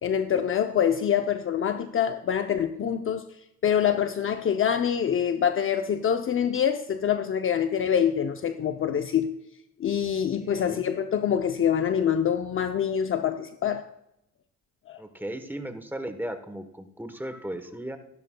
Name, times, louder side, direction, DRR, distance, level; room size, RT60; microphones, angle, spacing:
voice 1, 0.0-3.3 3.6-9.3 9.8-13.9 14.9-15.0, left 8 dB, 45° left, 0.6 m, -25 dB
voice 2, 10.4-10.9 15.0-18.0, right 1 dB, 5° right, 1.1 m, -36 dB
15.0 x 12.0 x 2.2 m
cardioid pair, 90°, 30 cm